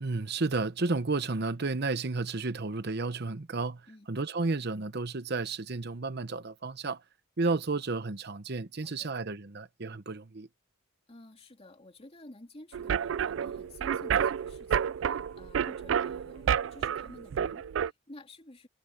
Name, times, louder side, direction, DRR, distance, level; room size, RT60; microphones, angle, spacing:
voice 1, 0.0-3.8 4.1-7.0 7.4-10.5, right 3 dB, 55° right, 1.0 m, -32 dB
voice 2, 8.8-9.1 11.1-18.7, left 1 dB, 30° left, 2.8 m, -52 dB
sound 1, 12.7-17.9, right 8 dB, 75° right, 0.3 m, -30 dB
head